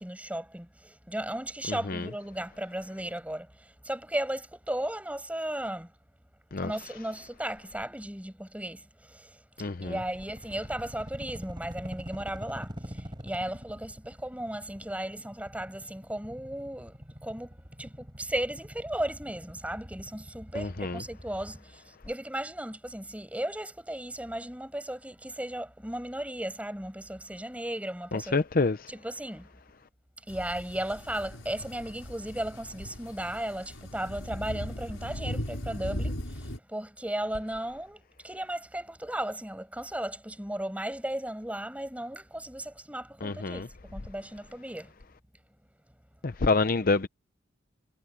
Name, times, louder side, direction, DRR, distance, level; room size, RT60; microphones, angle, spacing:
voice 1, 0.0-5.9 6.6-9.4 9.8-28.4 28.9-29.5 30.3-44.9, right 1 dB, 5° right, 6.9 m, -36 dB
voice 2, 1.7-2.0 6.5-6.7 9.6-9.9 20.5-21.0 28.1-28.9 43.2-43.7 46.2-47.1, left 3 dB, 45° left, 0.7 m, -27 dB
sound 1, 9.8-21.6, equal, 25° right, 6.0 m, -45 dB
sound 2, 30.3-36.6, equal, 90° left, 6.3 m, -38 dB
head